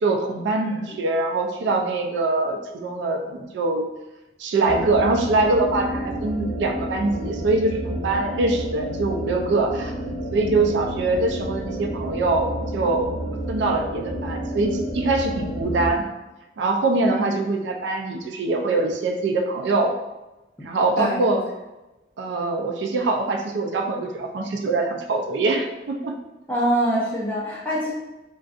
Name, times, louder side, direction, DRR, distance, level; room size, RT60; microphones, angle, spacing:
voice 1, 0.0-3.9 4.4-9.9 10.3-13.1 13.5-16.1 16.6-20.0 20.6-21.4 22.2-26.1, right 3 dB, 80° right, 4 dB, 0.4 m, -23 dB
voice 2, 0.5-1.0 17.1-17.4 21.0-21.2 26.5-27.9, equal, 10° left, -6 dB, 0.7 m, -25 dB
sound 1, 4.6-15.9, equal, 20° right, 1.1 m, -30 dB
3.7 x 2.3 x 2.4 m, 1.0 s
head